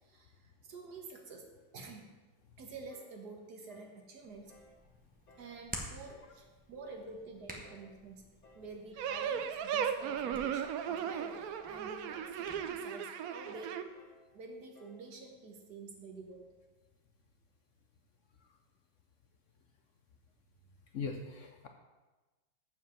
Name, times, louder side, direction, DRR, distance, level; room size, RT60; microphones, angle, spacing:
voice 1, 0.0-2.1 2.6-4.5 5.4-8.3 8.5-13.7 14.3-16.5, right 3 dB, 55° right, 3 dB, 1.7 m, -49 dB
sound 1, 2.9-3.2 3.7-4.0 4.5-4.8 5.3-5.6 6.1-6.4 6.8-7.2 7.6-7.9 8.4-8.7 9.2-9.5 10.0-10.3 10.8-11.1 11.6-11.9 12.4-12.6 13.1-13.4 13.9-14.3 14.7-15.0, left 1 dB, 60° left, 2.7 m, -60 dB
Hands, 4.2-12.7, equal, 5° right, 0.7 m, -51 dB
sound 2, 9.0-13.8, right 8 dB, 90° right, 0.7 m, -36 dB
voice 2, 20.9-21.7, left 4 dB, 80° left, 4 dB, 0.7 m, -40 dB
7.1 x 5.9 x 7.4 m, 1.2 s
omnidirectional pair, 2.2 m